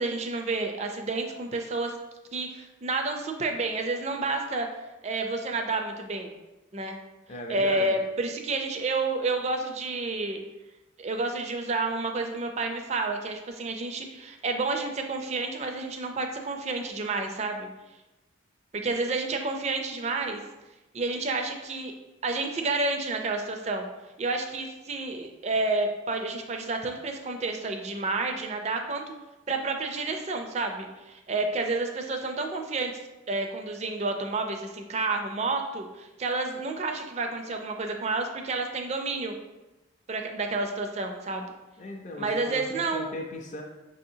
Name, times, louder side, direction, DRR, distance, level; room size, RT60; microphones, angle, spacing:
voice 1, 0.0-1.9 2.3-4.7 5.0-6.3 6.7-7.0 7.5-10.4 11.0-17.7 18.8-20.4 20.9-21.9 22.2-23.9 24.2-29.0 29.5-32.9 33.3-39.3 40.1-41.5 42.2-43.1, right 3 dB, 35° right, 4 dB, 0.4 m, -30 dB
voice 2, 7.3-8.0 41.8-42.6 42.9-43.6, left 1 dB, 35° left, 0 dB, 0.4 m, -37 dB
6.0 x 2.7 x 2.7 m, 1.0 s
head